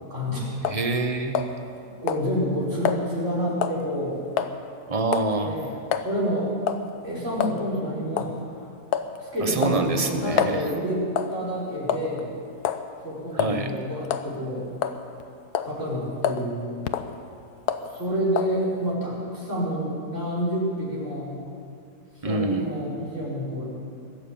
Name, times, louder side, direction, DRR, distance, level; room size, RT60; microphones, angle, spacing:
voice 1, 0.1-0.5 1.9-4.2 5.4-6.5 7.0-8.6 9.2-12.3 13.0-14.7 15.6-16.8 17.9-21.3 22.1-23.8, equal, 50° right, -7 dB, 5.0 m, -28 dB
sound 1, 0.6-0.9 1.4-1.8 2.1-2.3 2.9-3.0 3.6-3.8 4.4-4.5 5.1-5.3 5.9-6.1 6.7-6.9 7.4-7.6 8.2-8.3 8.9-9.2 9.6-10.6 11.2-11.4 11.9-12.2 12.7-12.9 13.4-13.6 14.1-14.3 14.8-15.2 15.6-15.8 16.2-16.5 16.9-17.1 17.7-17.9 18.4-18.6, left 8 dB, 80° left, 1.3 m, -27 dB
voice 2, 0.6-1.5 4.9-5.5 9.4-10.6 13.3-13.7 22.2-22.7, right 3 dB, 25° right, 6 dB, 0.9 m, -26 dB
21.5 x 7.3 x 8.7 m, 2.4 s
omnidirectional pair, 1.6 m